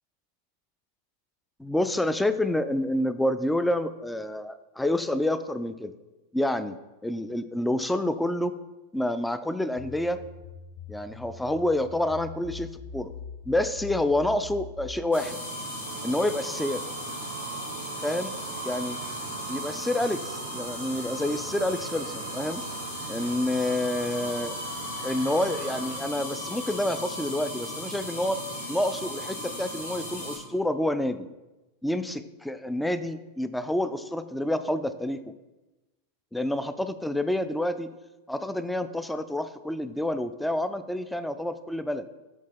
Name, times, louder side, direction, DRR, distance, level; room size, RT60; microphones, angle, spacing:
voice 1, 1.6-5.9 6.3-8.6 8.9-10.2 10.9-13.1 13.5-15.4 16.0-16.9 18.0-18.3 18.6-19.0 19.5-22.7 23.1-24.6 25.0-28.4 28.7-31.3 31.8-35.2 36.3-37.9 38.3-42.0, left 1 dB, 5° left, 12 dB, 0.3 m, -28 dB
sound 1, 9.8-15.1, left 5 dB, 50° left, 0.9 m, -42 dB
sound 2, 15.1-30.4, equal, 75° left, 1.7 m, -36 dB
sound 3, 15.9-26.0, right 6 dB, 60° right, 0.5 m, -42 dB
7.3 x 3.9 x 3.9 m, 1.1 s
figure-of-eight pair, 90°, 0 cm